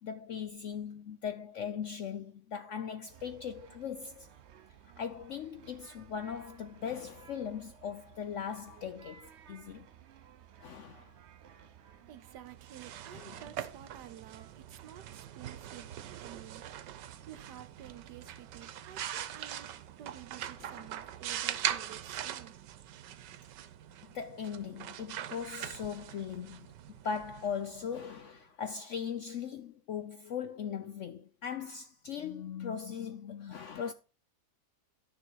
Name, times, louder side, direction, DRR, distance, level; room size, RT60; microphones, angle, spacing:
voice 1, 0.0-4.3 5.0-9.9 10.6-11.1 13.1-13.3 20.6-20.8 24.1-26.7 27.0-33.9, left 7 dB, 65° left, 0.7 m, -39 dB
sound 1, 3.1-22.5, right 9 dB, 55° right, 0.8 m, -57 dB
voice 2, 12.1-15.9 16.2-19.7 20.0-22.5, right 11 dB, 75° right, 1.4 m, -51 dB
sound 2, 12.5-28.2, right 11 dB, 90° right, 1.4 m, -42 dB
11.0 x 6.7 x 4.6 m
omnidirectional pair, 1.8 m